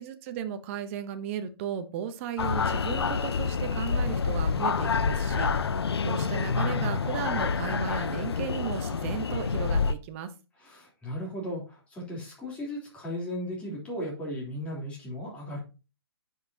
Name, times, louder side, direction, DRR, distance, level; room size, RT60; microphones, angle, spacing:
voice 1, 0.0-10.3, right 8 dB, 30° right, 9 dB, 0.8 m, -35 dB
sound 1, 2.4-9.9, left 5 dB, 75° left, 0.6 m, -28 dB
voice 2, 10.6-15.6, equal, 10° left, -5 dB, 3.4 m, -36 dB
9.7 x 5.6 x 2.8 m, 0.31 s
hypercardioid pair, 140°, 13 cm